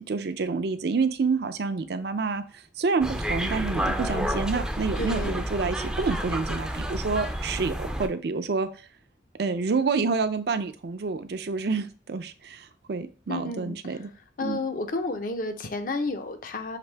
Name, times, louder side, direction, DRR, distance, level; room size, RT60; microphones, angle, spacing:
voice 1, 0.1-2.4 2.8-8.7 9.4-14.1 14.4-14.6, right 4 dB, 65° right, 10 dB, 0.5 m, -28 dB
sound 1, 3.0-8.1, equal, 5° right, 0.4 m, -30 dB
voice 2, 5.0-5.5 13.3-14.0 14.4-16.8, left 3 dB, 50° left, 7 dB, 0.6 m, -31 dB
5.9 x 2.6 x 3.3 m, 0.38 s
head